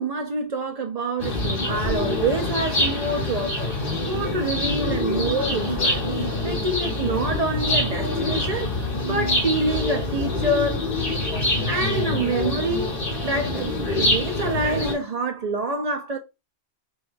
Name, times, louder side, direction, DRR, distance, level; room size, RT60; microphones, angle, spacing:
voice 1, 0.0-6.0 6.4-8.8 9.0-10.8 11.7-12.9 13.2-16.2, right 2 dB, 50° right, 0.5 m, -26 dB
sound 1, 1.2-14.9, left 2 dB, 60° left, 1.5 m, -25 dB
4.7 x 2.3 x 2.5 m
omnidirectional pair, 1.1 m